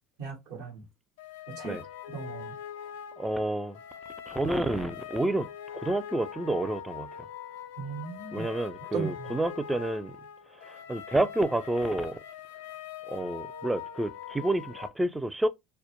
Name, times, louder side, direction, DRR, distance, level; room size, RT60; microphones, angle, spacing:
voice 1, 0.2-0.9 1.5-1.8 2.1-2.6 7.8-8.5 8.9-9.4, right 5 dB, 70° right, 1.0 m, -37 dB
sound 1, 1.2-14.9, left 9 dB, 80° left, 0.3 m, -43 dB
voice 2, 3.2-3.8 4.3-7.1 8.3-10.1 10.7-12.2 13.1-15.5, right 1 dB, 10° right, 0.3 m, -29 dB
2.1 x 2.0 x 2.9 m
hypercardioid pair, 80°, 0 cm